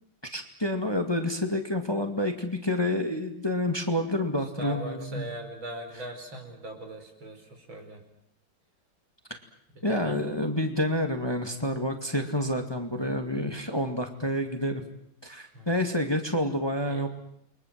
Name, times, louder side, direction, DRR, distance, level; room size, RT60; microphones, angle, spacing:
voice 1, 0.3-5.3 9.8-14.8 15.2-17.1, left 1 dB, 10° left, 5 dB, 2.2 m, -28 dB
voice 2, 4.6-8.0 9.7-10.2 15.5-15.7 16.9-17.1, right 1 dB, 80° right, 4 dB, 6.1 m, -40 dB
30.0 x 23.0 x 7.7 m, 0.70 s
omnidirectional pair, 2.2 m